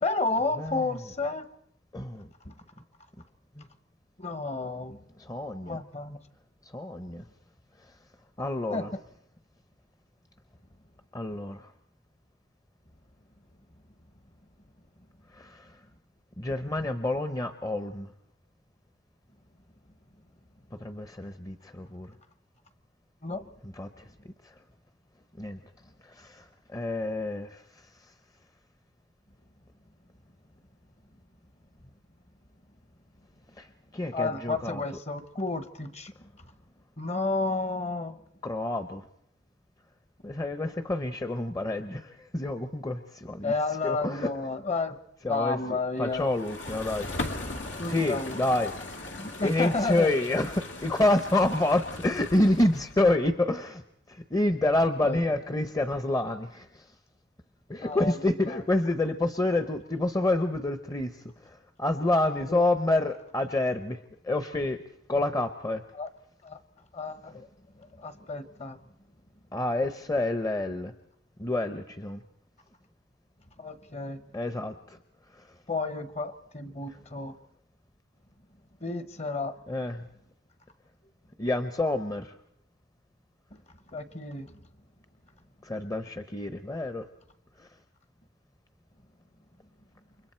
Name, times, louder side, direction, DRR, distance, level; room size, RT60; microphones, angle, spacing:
voice 1, 0.0-1.5 2.4-2.5 4.2-5.0 5.7-6.2 8.7-8.8 23.2-23.5 34.1-36.3 37.0-38.2 43.4-44.9 45.3-46.3 47.8-48.4 49.2-50.1 55.0-55.2 57.8-58.1 58.4-58.6 62.5-62.6 65.9-66.1 66.4-66.6 66.9-67.5 67.7-68.8 73.6-74.2 75.7-77.4 78.8-79.5 83.9-84.6, left 3 dB, 35° left, 12 dB, 1.2 m, -31 dB
voice 2, 1.9-2.3 3.6-3.7 5.2-5.8 6.7-7.2 8.4-8.9 11.1-11.7 15.3-15.7 16.4-18.1 20.7-22.1 23.6-24.1 25.4-25.6 26.0-26.4 26.7-27.6 33.6-33.7 33.9-34.8 38.4-39.0 40.2-43.5 43.8-44.3 45.2-47.1 47.9-48.7 49.4-53.8 54.1-56.9 57.7-64.8 65.1-65.8 69.5-70.9 71.4-72.2 74.3-75.0 75.3-75.5 79.7-80.0 81.4-82.3 85.6-87.1 87.6-87.7, left 2 dB, 20° left, 9 dB, 0.8 m, -28 dB
sound 1, 46.1-53.1, left 2 dB, 85° left, 2.1 m, -39 dB
29.0 x 24.5 x 4.5 m, 0.73 s
head